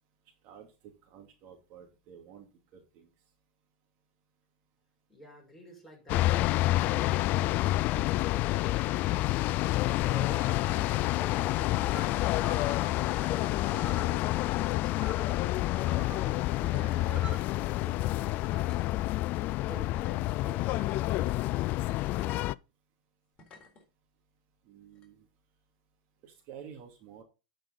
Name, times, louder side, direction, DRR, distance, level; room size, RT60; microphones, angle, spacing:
voice 1, 0.4-3.1 13.9-14.1 24.6-25.3 26.2-27.2, right 8 dB, 50° right, 2 dB, 2.6 m, -51 dB
voice 2, 5.1-6.4 6.8-10.9 11.2-14.0 14.6-19.1 19.6-22.4, equal, 5° left, -2 dB, 5.7 m, -52 dB
sound 1, 6.1-22.5, left 17 dB, 45° left, 0.3 m, -28 dB
sound 2, 9.2-17.4, right 4 dB, 20° right, 1.7 m, -48 dB
sound 3, 16.6-17.0 17.7-17.8 18.5-19.4 20.3-20.9 22.1-22.4 23.4-23.8 24.9-25.1, left 3 dB, 30° left, 3.8 m, -55 dB
11.5 x 5.3 x 4.1 m, 0.29 s
supercardioid pair, 120°, 4 cm